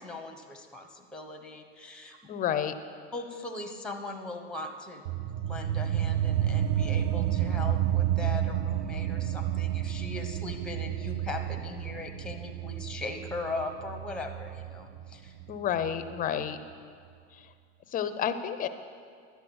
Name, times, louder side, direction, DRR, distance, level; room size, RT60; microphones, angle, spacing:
voice 1, 0.0-2.2 3.1-15.4, left 2 dB, 5° left, 5 dB, 0.9 m, -39 dB
voice 2, 2.3-2.7 15.5-16.6 17.3-17.4 17.9-18.7, left 9 dB, 25° left, 10 dB, 0.6 m, -30 dB
sound 1, 5.0-16.1, right 11 dB, 60° right, 0.7 m, -30 dB
11.5 x 7.7 x 6.3 m, 2.2 s
supercardioid pair, 125°, 33 cm